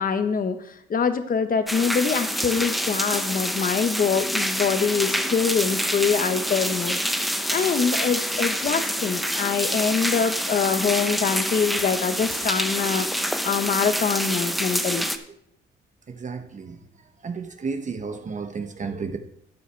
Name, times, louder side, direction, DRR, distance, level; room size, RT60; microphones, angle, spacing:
voice 1, 0.0-7.0 7.5-15.0, left 6 dB, 45° left, 9 dB, 1.1 m, -24 dB
sound 1, 1.7-15.2, equal, ahead, 0.8 m, -27 dB
voice 2, 16.1-16.8 17.2-19.2, right 5 dB, 40° right, 7 dB, 0.9 m, -32 dB
12.5 x 8.4 x 3.3 m, 0.72 s
cardioid pair, 90°, 20 cm